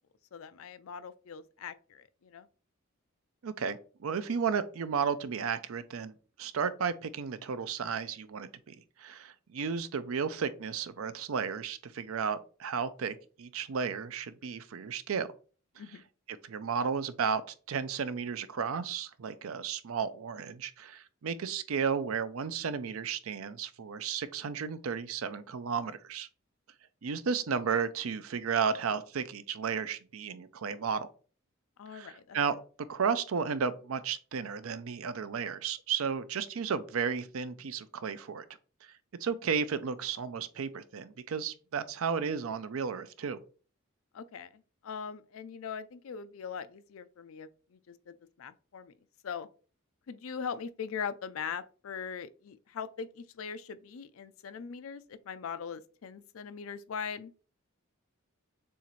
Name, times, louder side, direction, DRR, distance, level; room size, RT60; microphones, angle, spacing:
voice 1, 0.3-2.5 15.8-16.0 31.8-32.4 44.1-48.9 49.2-49.5 50.1-57.3, left 6 dB, 75° left, 0.4 m, -41 dB
voice 2, 3.4-15.3 16.4-17.4 17.7-26.3 27.0-31.1 31.9-32.5 32.9-38.4 39.2-43.4, right 6 dB, 80° right, 0.5 m, -33 dB
6.9 x 2.5 x 3.1 m
head